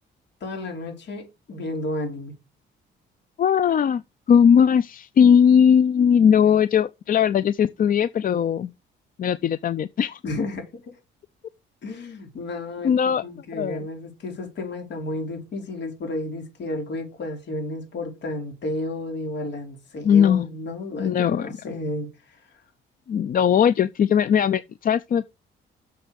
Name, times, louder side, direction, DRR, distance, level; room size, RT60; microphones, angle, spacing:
voice 1, 0.4-2.3 10.2-10.9 11.8-22.4, left 2 dB, 60° left, 3.8 m, -32 dB
voice 2, 3.4-4.0 4.3-8.7 9.2-10.2 12.8-13.2 13.5-13.8 20.0-20.5 21.0-21.5 23.1-25.3, left 8 dB, 45° left, 0.5 m, -19 dB
6.9 x 6.2 x 5.2 m
cardioid pair, 90°, 20 cm